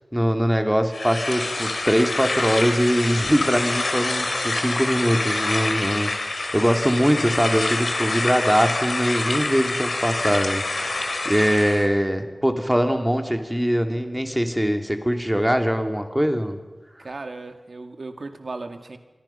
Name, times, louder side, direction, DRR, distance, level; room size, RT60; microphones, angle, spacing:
voice 1, 0.1-6.1 6.5-16.6, equal, 5° right, 5 dB, 2.7 m, -22 dB
sound 1, 0.9-11.9, left 2 dB, 85° left, 3.2 m, -26 dB
voice 2, 17.0-19.0, right 3 dB, 85° right, 7 dB, 2.1 m, -36 dB
27.0 x 24.0 x 5.8 m, 1.2 s
wide cardioid pair, 60°, 0 cm